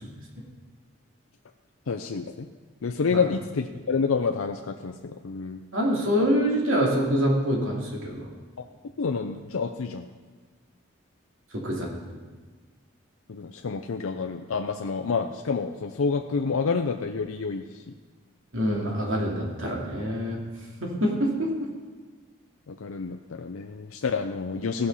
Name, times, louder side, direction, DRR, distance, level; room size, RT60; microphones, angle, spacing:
voice 1, 1.9-2.5 2.8-5.6 8.6-8.7 9.0-10.1 13.3-17.9 22.7-24.9, left 5 dB, 85° left, 5 dB, 0.6 m, -28 dB
voice 2, 5.7-8.3 11.5-11.9 18.5-20.4 20.8-21.5, equal, 70° right, -1 dB, 2.6 m, -25 dB
16.0 x 6.6 x 5.5 m, 1.4 s
head